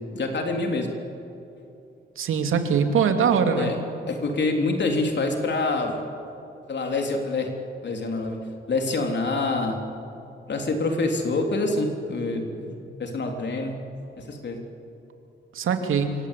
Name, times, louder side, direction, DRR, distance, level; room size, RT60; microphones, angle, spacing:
voice 1, 0.1-0.9 3.5-3.8 4.1-5.9 6.7-7.5 7.8-8.4 8.7-9.8 10.5-12.7 13.0-13.8 14.2-14.6, left 3 dB, 60° left, 3 dB, 3.7 m, -26 dB
voice 2, 2.2-3.7 15.5-16.1, right 6 dB, 80° right, 5 dB, 2.8 m, -22 dB
25.5 x 25.5 x 8.5 m, 2.8 s
supercardioid pair, 60°, 21 cm